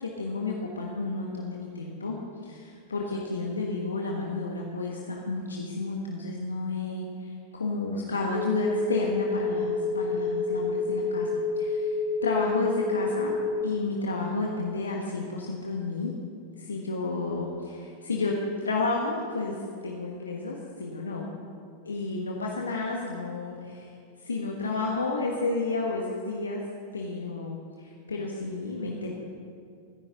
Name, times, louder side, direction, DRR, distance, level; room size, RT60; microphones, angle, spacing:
voice 1, 0.0-2.2 2.4-12.0 12.2-13.3 13.6-16.1 16.6-21.3 21.8-23.9 24.2-26.6 26.9-29.1, left 3 dB, 75° left, -1 dB, 1.4 m, -31 dB
sound 1, 8.3-13.6, left 3 dB, 40° left, 1.3 m, -28 dB
23.0 x 10.5 x 4.0 m, 2.3 s
figure-of-eight pair, 90°, 0 cm